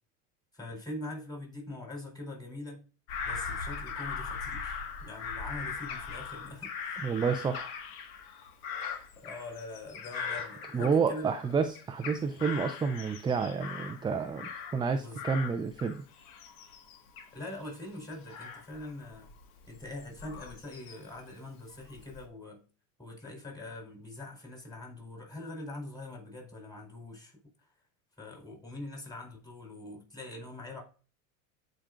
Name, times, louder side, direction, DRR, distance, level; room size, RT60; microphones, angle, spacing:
voice 1, 0.5-2.8 3.2-7.0 9.2-11.4 15.0-15.2 17.3-19.3 19.7-22.6 23.0-27.3 28.2-30.8, left 2 dB, 10° left, 4.2 m, -43 dB
Bird vocalization bird call bird song / Crow, 3.1-11.4 11.8-14.9 15.2-21.2 21.7-22.3, left 6 dB, 55° left, 1.8 m, -40 dB
voice 2, 7.0-7.7 10.7-16.0, right 5 dB, 10° right, 0.5 m, -30 dB
14.0 x 5.2 x 2.5 m
supercardioid pair, 110°, 43 cm